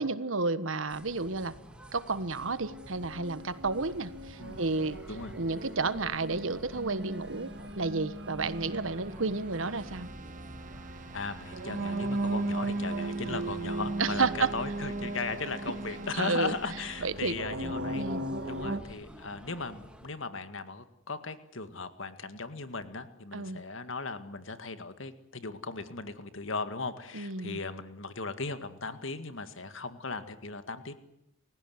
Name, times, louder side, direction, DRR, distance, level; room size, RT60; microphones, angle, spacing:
voice 1, 0.0-1.5 1.9-5.0 5.3-7.5 7.8-10.1 14.0-14.5 16.1-16.5 17.0-17.3 17.9-18.2 23.3-23.6 27.1-27.6, right 3 dB, 75° right, 14 dB, 1.4 m, -31 dB
sound 1, 0.9-20.1, equal, 5° right, 2.2 m, -50 dB
sound 2, 2.3-18.8, right 2 dB, 55° right, 2.1 m, -37 dB
Keyboard (musical), 8.4-17.4, right 3 dB, 40° right, 1.1 m, -49 dB
voice 2, 11.1-18.0 18.5-30.9, left 3 dB, 70° left, 10 dB, 2.0 m, -37 dB
30.0 x 16.0 x 9.5 m, 0.86 s
head